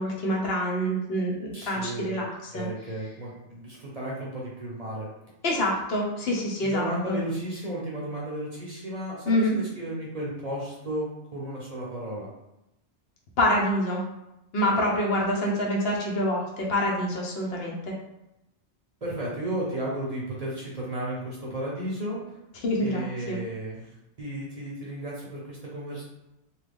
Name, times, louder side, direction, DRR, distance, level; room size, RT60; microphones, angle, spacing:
voice 1, 0.0-2.7 5.4-7.2 9.3-9.6 13.4-14.0 14.5-17.9 22.6-23.4, equal, 65° left, -2 dB, 0.8 m, -26 dB
voice 2, 1.5-2.2 2.5-5.1 6.6-12.3 19.0-22.4 22.8-26.0, right 1 dB, 40° right, -5 dB, 0.7 m, -34 dB
3.0 x 2.3 x 3.4 m, 0.91 s
omnidirectional pair, 1.2 m